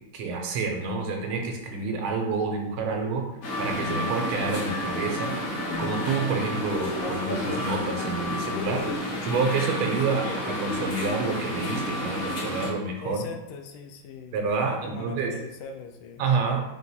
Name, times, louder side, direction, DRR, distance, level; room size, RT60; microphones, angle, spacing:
voice 1, 0.1-3.3 3.6-8.9 9.2-13.2 14.3-15.3 16.2-16.6, right 4 dB, 85° right, 2 dB, 1.5 m, -28 dB
sound 1, 3.4-12.7, left 1 dB, 55° left, 1.0 m, -30 dB
voice 2, 13.0-14.4 14.8-16.2, left 5 dB, 85° left, 4 dB, 1.4 m, -41 dB
4.6 x 2.3 x 4.1 m, 0.91 s
omnidirectional pair, 2.3 m